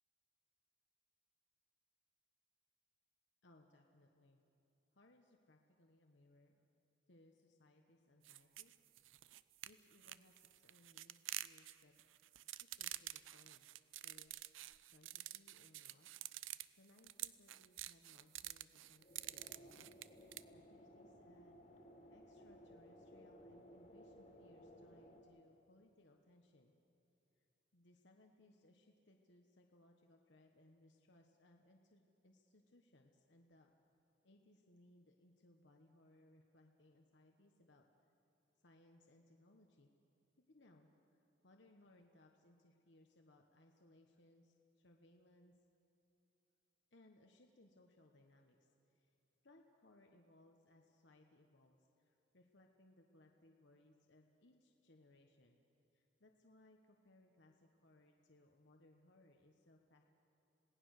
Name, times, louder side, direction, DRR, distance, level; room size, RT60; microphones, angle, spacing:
voice 1, 3.4-4.4 4.9-6.7 7.1-8.7 9.6-11.9 12.4-13.7 14.0-14.3 14.9-16.1 16.4-19.9 20.5-26.7 27.4-27.5 27.7-33.7 34.2-38.1 38.6-39.9 40.4-45.6 46.9-49.1 49.4-55.6 55.9-60.0, left 1 dB, 65° left, 2 dB, 1.2 m, -68 dB
sound 1, 8.2-20.4, right 15 dB, 80° right, 0.6 m, -49 dB
sound 2, 19.0-25.2, equal, 35° left, 2.3 m, -60 dB
27.5 x 18.5 x 6.6 m, 2.9 s
head